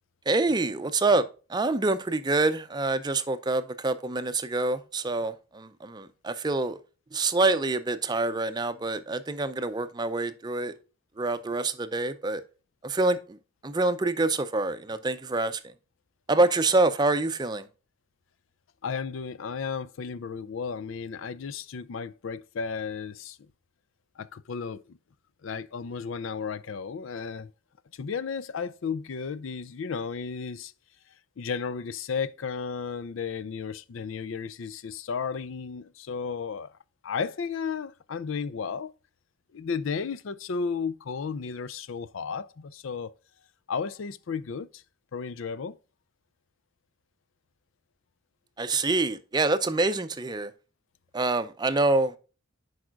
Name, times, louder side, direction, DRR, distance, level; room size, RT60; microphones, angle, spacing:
voice 1, 0.3-6.8 7.1-10.7 11.2-12.4 12.8-13.4 13.6-15.7 16.3-17.7 48.6-50.5 51.1-52.2, right 2 dB, 20° right, 0.5 m, -26 dB
voice 2, 18.8-23.4 24.2-25.0 25.4-27.5 27.9-30.7 31.4-36.7 37.0-38.9 39.5-43.1 43.7-44.8 45.1-45.8, left 5 dB, 75° left, 0.4 m, -33 dB
10.5 x 4.9 x 2.4 m
head